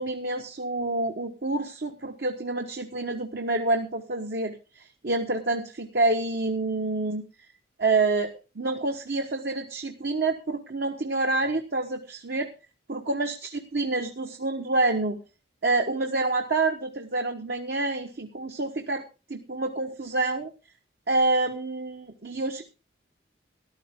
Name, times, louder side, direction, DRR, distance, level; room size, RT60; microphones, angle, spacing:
voice 1, 0.0-7.2 7.8-12.5 12.9-15.2 15.6-19.0 19.3-20.5 21.1-22.6, right 2 dB, 60° right, 4 dB, 1.2 m, -27 dB
14.0 x 12.0 x 3.7 m, 0.32 s
head